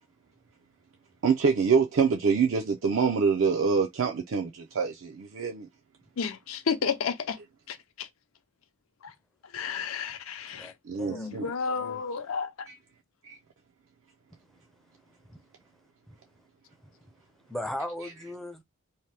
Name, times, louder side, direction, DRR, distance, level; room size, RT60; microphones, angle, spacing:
voice 1, 1.2-5.7 10.9-11.5 12.7-12.8 13.3-13.4, right 5 dB, 65° right, 0.4 m, -25 dB
voice 2, 6.2-7.4 7.7-8.1 9.5-10.7 11.1-12.7, left 6 dB, 75° left, 0.5 m, -32 dB
voice 3, 10.5-11.4 11.6-12.0 15.3-15.4 16.1-16.2 17.5-18.6, left 1 dB, ahead, 0.4 m, -38 dB
2.8 x 2.1 x 3.2 m
head